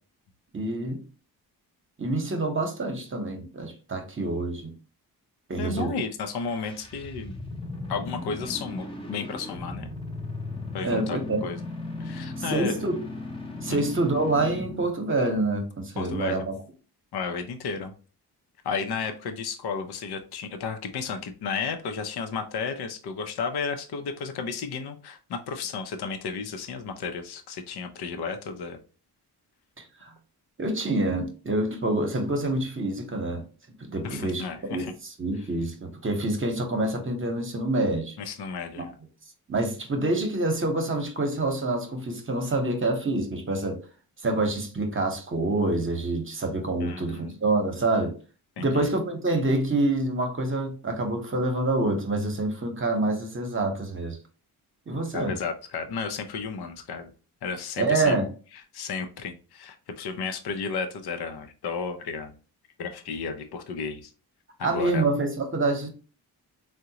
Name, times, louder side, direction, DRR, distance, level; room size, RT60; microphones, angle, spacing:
voice 1, 0.5-1.0 2.0-4.7 5.5-5.9 10.8-11.4 12.5-13.0 13.6-16.5 29.8-30.1 30.6-34.8 35.2-38.2 38.8-38.9 39.5-43.8 44.2-48.1 48.6-54.2 54.9-55.4 57.8-58.3 64.6-65.9, right 2 dB, 30° right, 0.9 m, -27 dB
voice 2, 5.6-7.4 7.9-9.9 10.7-11.6 12.0-12.8 13.7-13.8 16.0-16.5 17.1-17.9 18.6-28.8 34.0-34.9 38.2-38.9 46.8-47.4 48.6-48.9 55.1-57.1 57.4-58.3 58.7-62.4 62.8-64.1 64.6-65.1, left 5 dB, 70° left, 0.6 m, -33 dB
sound 1, 6.2-14.9, left 2 dB, 15° left, 0.7 m, -37 dB
3.6 x 2.1 x 2.8 m
cardioid pair, 70°, 40 cm